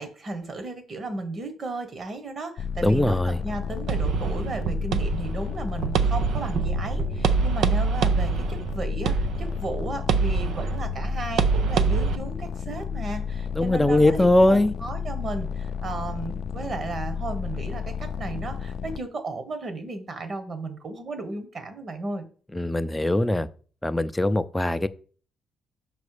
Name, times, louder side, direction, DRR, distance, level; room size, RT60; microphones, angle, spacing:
voice 1, 0.0-22.2, right 2 dB, 45° right, 1.5 m, -34 dB
sound 1, 2.6-19.0, left 7 dB, 70° left, 0.4 m, -32 dB
voice 2, 2.8-3.4 13.5-14.7 22.5-23.5 23.8-24.9, left 1 dB, 10° left, 0.5 m, -21 dB
sound 2, 3.9-12.2, right 5 dB, 75° right, 0.5 m, -25 dB
5.9 x 5.2 x 5.0 m
cardioid pair, 90°, 0 cm